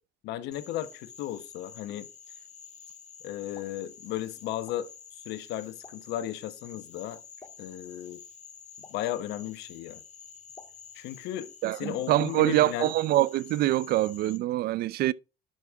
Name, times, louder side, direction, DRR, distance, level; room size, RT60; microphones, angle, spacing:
voice 1, 0.2-2.1 3.2-7.2 7.6-8.2 8.9-10.0 10.9-12.9, left 13 dB, 90° left, 0.9 m, -35 dB
Frog, 0.5-14.4, left 7 dB, 45° left, 1.7 m, -49 dB
Explosion, 3.3-13.6, left 3 dB, 25° left, 3.3 m, -59 dB
voice 2, 11.6-15.1, right 15 dB, 65° right, 0.4 m, -25 dB
11.5 x 4.9 x 3.5 m
cardioid pair, 110°, 17 cm